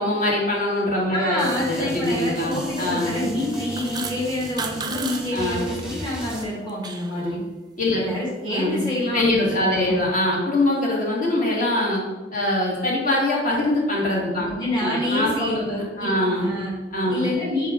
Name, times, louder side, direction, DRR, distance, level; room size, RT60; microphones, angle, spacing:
voice 1, 0.0-3.3 5.3-5.8 7.1-7.4 7.8-8.0 8.5-12.0 12.3-14.5 14.8-16.6 16.9-17.4, left 1 dB, 45° left, -3 dB, 1.9 m, -23 dB
voice 2, 1.1-7.4 7.9-10.0 14.3-16.8 17.1-17.7, left 1 dB, 25° left, -6 dB, 1.6 m, -27 dB
sound 1, 1.4-6.4, equal, 5° right, 1.1 m, -36 dB
sound 2, 3.5-5.2 5.5-5.8 6.3-7.2, right 5 dB, 25° right, 0.5 m, -33 dB
7.2 x 4.8 x 3.7 m, 1.2 s
head